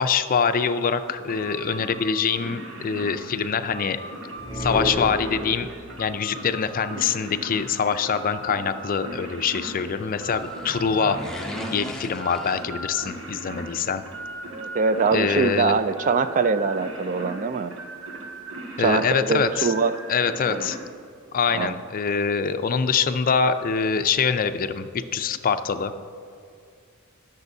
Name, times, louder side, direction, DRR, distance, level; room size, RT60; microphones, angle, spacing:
voice 1, 0.0-4.0 4.6-5.7 6.0-11.2 11.7-14.0 15.1-15.8 18.8-19.7 20.1-20.8 21.3-25.9, left 6 dB, 45° left, 10 dB, 0.4 m, -24 dB
sound 1, 1.2-20.8, right 1 dB, 70° right, 1.8 m, -38 dB
sound 2, 4.4-5.9, equal, 15° right, 1.4 m, -30 dB
sound 3, 10.0-13.3 13.6-13.7, left 1 dB, 5° left, 0.7 m, -38 dB
voice 2, 14.5-17.7 18.8-19.9 20.4-20.7 21.5-21.7, right 4 dB, 40° right, 12 dB, 0.4 m, -23 dB
20.0 x 6.7 x 2.7 m, 2.3 s
head